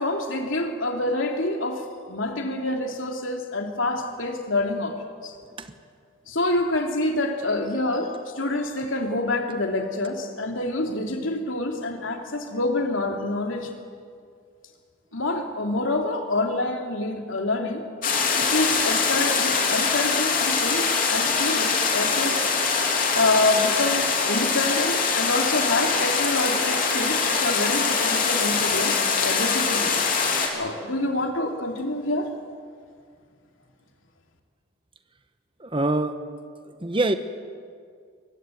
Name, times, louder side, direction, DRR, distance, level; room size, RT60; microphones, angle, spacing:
voice 1, 0.0-5.4 6.3-13.7 15.1-17.8 18.3-22.4 23.1-30.0 30.5-32.3, left 2 dB, 70° left, 3 dB, 3.0 m, -27 dB
sound 1, 18.0-30.5, left 5 dB, 40° left, 3.7 m, -23 dB
voice 2, 35.6-36.2 36.8-37.2, right 2 dB, 25° right, 9 dB, 1.1 m, -24 dB
23.5 x 21.0 x 9.3 m, 2.2 s
head